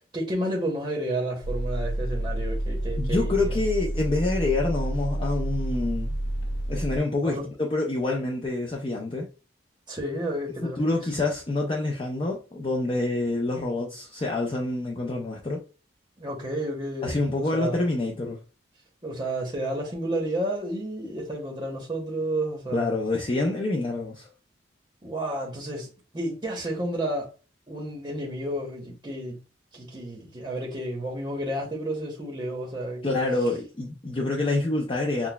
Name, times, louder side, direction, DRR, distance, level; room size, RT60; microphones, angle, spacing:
voice 1, 0.0-3.5 7.2-7.4 9.9-10.8 16.2-17.2 17.5-17.8 19.0-22.9 25.0-25.9 26.1-27.3 27.7-29.4 29.7-33.2, right 1 dB, 25° right, 0.9 m, -31 dB
sound 1, 1.4-7.0, right 1 dB, 70° left, 0.6 m, -29 dB
voice 2, 3.0-6.1 6.7-9.3 10.8-15.6 17.0-18.4 22.7-24.3 33.0-35.3, left 2 dB, 30° left, 0.5 m, -27 dB
5.9 x 2.2 x 2.2 m
head